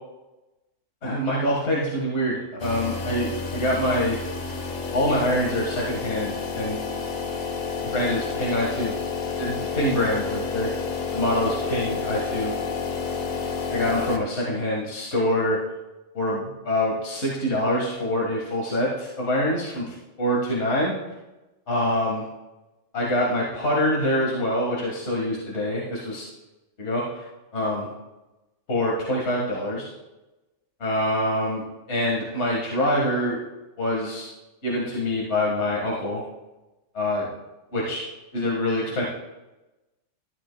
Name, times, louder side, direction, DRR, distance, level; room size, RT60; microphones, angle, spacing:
voice 1, 1.0-4.2 4.9-6.8 7.9-9.0 9.4-10.7 11.1-12.6 13.7-15.6 16.1-19.8 20.2-20.9 21.7-22.2 22.9-26.2 26.8-27.2 27.5-27.9 28.7-29.9 30.8-31.6 31.9-33.4 33.8-34.3 34.6-36.2 36.9-37.3 37.7-38.0 38.3-39.1, left 1 dB, 55° left, -4 dB, 2.0 m, -25 dB
sound 1, 2.6-14.2, left 5 dB, 80° left, 1.4 m, -30 dB
13.0 x 11.5 x 2.3 m, 1.0 s
omnidirectional pair, 1.4 m